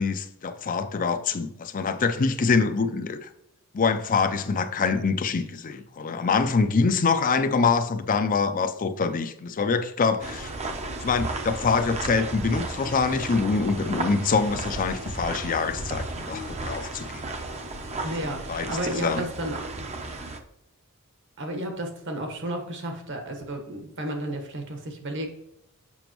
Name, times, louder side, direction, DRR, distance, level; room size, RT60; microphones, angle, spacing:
voice 1, 0.0-3.3 3.7-10.5 11.0-17.2 18.5-19.3, left 4 dB, 40° left, 0.5 m, -25 dB
sound 1, 10.2-20.4, right 2 dB, 30° right, 0.7 m, -34 dB
voice 2, 18.0-19.6 21.4-25.3, right 1 dB, 55° right, 1.3 m, -32 dB
7.0 x 5.9 x 3.0 m
head